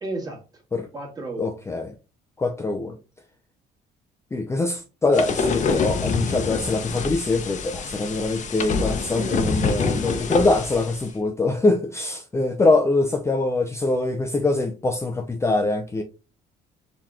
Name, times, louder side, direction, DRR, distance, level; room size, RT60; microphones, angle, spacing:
voice 1, 0.0-0.6 0.9-1.5 9.1-10.0 11.1-11.2, right 2 dB, 20° right, 1.6 m, -34 dB
voice 2, 1.4-1.9 2.4-3.0 4.3-16.0, left 2 dB, 15° left, 0.5 m, -23 dB
sound 1, 5.1-11.0, left 5 dB, 45° left, 0.8 m, -26 dB
4.8 x 3.0 x 3.5 m
cardioid pair, 110°, 17 cm